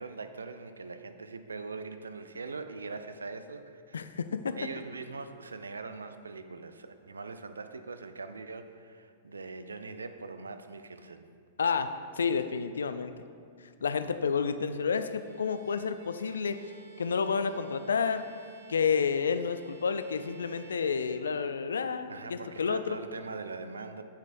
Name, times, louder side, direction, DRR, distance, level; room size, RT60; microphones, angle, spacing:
voice 1, 0.0-4.1 4.6-11.3 22.1-24.0, right 4 dB, 80° right, 9 dB, 0.4 m, -42 dB
voice 2, 3.9-4.6 11.6-13.1 13.8-16.6 17.0-18.2 18.7-23.0, left 6 dB, 75° left, 11 dB, 0.4 m, -30 dB
Bowed string instrument, 15.0-21.8, right 6 dB, 50° right, 1.0 m, -54 dB
9.2 x 7.2 x 2.5 m, 2.3 s
figure-of-eight pair, 100°, 0 cm